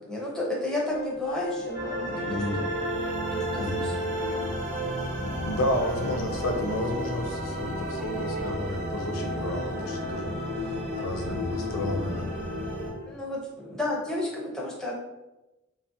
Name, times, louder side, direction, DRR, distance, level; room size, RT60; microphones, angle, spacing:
voice 1, 0.1-2.7 3.3-3.9 4.6-4.8 13.1-14.9, left 2 dB, 5° left, -4 dB, 0.4 m, -32 dB
sound 1, 0.9-5.1 5.7-6.3 7.9-8.6 9.2-13.1, equal, 75° right, 0.6 m, -37 dB
sound 2, 1.7-12.9, equal, 35° right, 0.7 m, -32 dB
voice 2, 2.3-2.6 3.6-3.9 5.4-12.3, left 1 dB, 80° left, 3 dB, 0.4 m, -31 dB
2.8 x 2.3 x 2.5 m, 1.0 s
head